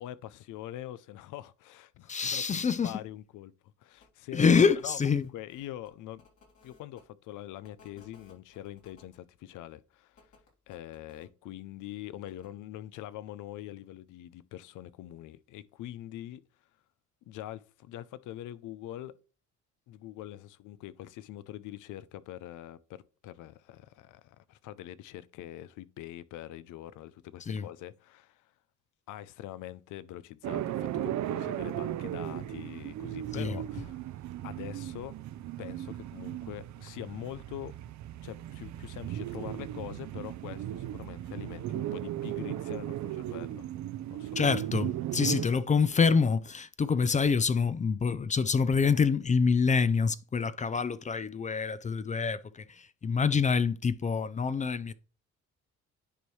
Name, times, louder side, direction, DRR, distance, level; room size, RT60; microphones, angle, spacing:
voice 1, 0.0-3.5 3.8-6.2 6.6-10.3 10.7-16.4 17.2-19.1 19.9-28.5 29.1-34.0 34.4-35.1 35.6-37.7 38.2-43.7 44.1-44.4 45.5-45.6, left 13 dB, 85° left, 0.5 m, -44 dB
voice 2, 2.1-3.0 4.3-5.3 27.5-27.6 33.3-33.6 44.4-54.9, left 5 dB, 25° left, 0.4 m, -26 dB
sound 1, 4.0-4.1 4.6-7.0 7.6-9.2 10.1-11.3 12.2-12.5, left 4 dB, 70° left, 3.4 m, -60 dB
sound 2, 30.4-45.5, right 12 dB, 70° right, 0.5 m, -36 dB
9.9 x 4.6 x 3.1 m
cardioid pair, 90°, 30 cm